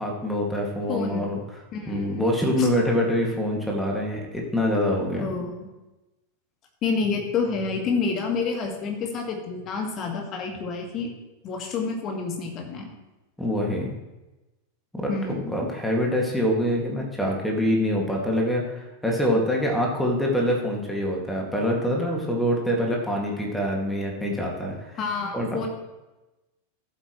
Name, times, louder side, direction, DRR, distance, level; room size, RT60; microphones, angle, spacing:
voice 1, 0.0-1.4 1.9-5.2 13.4-13.9 14.9-25.0 25.3-25.7, equal, 5° left, -1 dB, 2.2 m, -25 dB
voice 2, 0.9-2.1 2.6-2.7 5.2-5.7 6.8-11.1 11.4-12.9 15.1-15.5 25.0-25.7, left 4 dB, 35° left, 3 dB, 1.9 m, -29 dB
14.0 x 8.2 x 3.2 m, 1.1 s
figure-of-eight pair, 90°, 0 cm